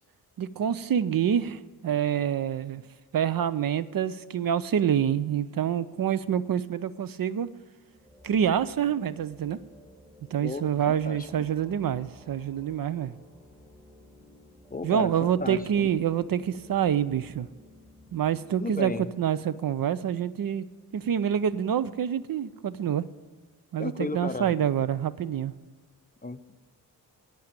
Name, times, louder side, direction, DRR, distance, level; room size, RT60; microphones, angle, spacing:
voice 1, 0.4-2.8 3.1-7.5 8.2-9.6 10.3-13.1 14.8-17.5 18.1-18.9 19.2-20.7 20.9-23.1 23.7-25.5, right 9 dB, 60° right, 16 dB, 0.6 m, -27 dB
sound 1, 7.4-19.0, left 1 dB, 10° right, 3.1 m, -54 dB
voice 2, 10.4-11.5 14.7-15.9 18.6-19.1 23.8-24.5 26.2-26.5, left 2 dB, 25° left, 10 dB, 0.6 m, -34 dB
9.1 x 8.5 x 8.9 m, 1.4 s
cardioid pair, 70°, 38 cm